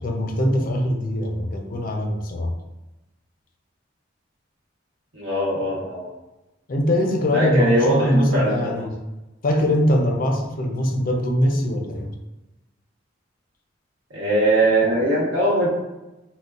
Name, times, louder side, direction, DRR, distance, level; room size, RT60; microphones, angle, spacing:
voice 1, 0.0-2.5 6.7-9.0 9.4-12.2, left 1 dB, 45° left, 2 dB, 0.5 m, -22 dB
voice 2, 5.1-6.1 7.3-8.8 14.1-15.7, right 1 dB, 85° right, -6 dB, 1.2 m, -21 dB
3.8 x 2.1 x 2.4 m, 1.0 s
head